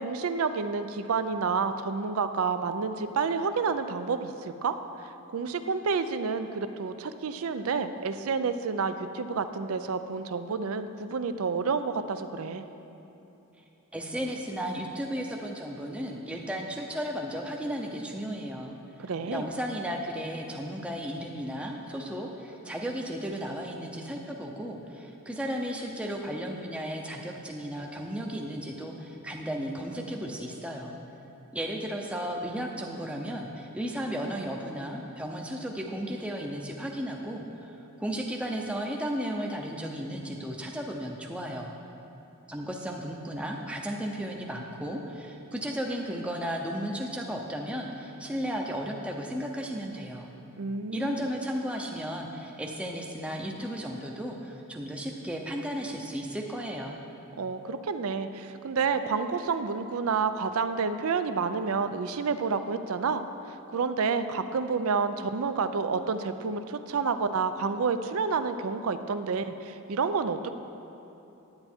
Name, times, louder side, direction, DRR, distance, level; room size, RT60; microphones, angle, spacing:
voice 1, 0.0-4.7 5.0-12.7 19.0-19.5 50.6-51.2 57.4-63.2 63.5-70.5, right 5 dB, 75° right, 10 dB, 0.5 m, -29 dB
voice 2, 13.9-18.7 19.3-30.9 31.5-41.7 42.5-50.3 50.9-57.0, equal, 5° right, 0 dB, 0.6 m, -34 dB
10.5 x 9.0 x 4.4 m, 2.9 s
head